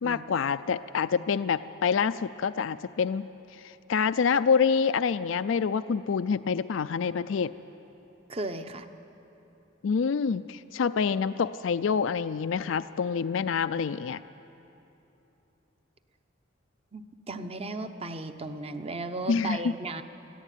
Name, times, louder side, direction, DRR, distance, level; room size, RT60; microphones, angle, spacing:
voice 1, 0.0-3.3 3.6-7.5 9.8-14.2 19.3-19.7, left 6 dB, 75° left, 14 dB, 0.4 m, -27 dB
voice 2, 8.3-8.9 16.9-20.0, right 2 dB, 30° right, 8 dB, 0.8 m, -35 dB
22.5 x 14.5 x 9.2 m, 3.0 s
head